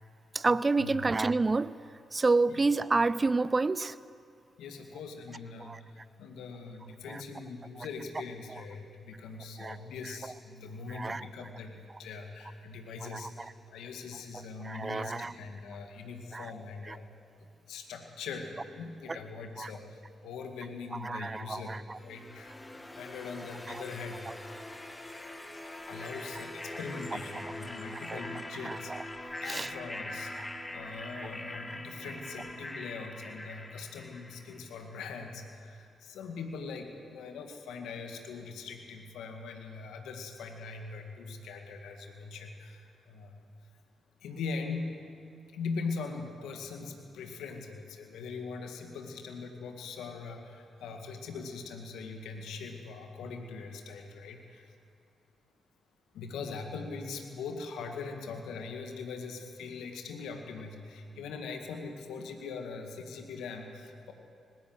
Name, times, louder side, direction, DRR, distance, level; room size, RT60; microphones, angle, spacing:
voice 1, 0.3-1.7 2.1-4.0 5.6-5.8 7.1-7.2 7.8-7.9 8.5-8.6 9.6-9.8 10.9-11.3 13.1-13.5 14.6-15.3 16.3-16.5 16.9-17.0 19.1-19.2 19.6-19.7 20.9-22.0 28.1-28.2 28.6-29.0 29.5-29.7 30.3-30.5 31.2-31.3, right 3 dB, 35° right, 18 dB, 0.5 m, -29 dB
voice 2, 4.6-17.1 17.7-22.6 22.9-24.6 25.9-28.9 29.4-43.4 44.2-45.0 45.5-54.7 56.1-64.1, left 4 dB, 75° left, 4 dB, 2.1 m, -41 dB
sound 1, 22.0-34.9, left 1 dB, 15° left, 1.9 m, -43 dB
19.5 x 17.5 x 8.1 m, 2.5 s
hypercardioid pair, 40°, 0 cm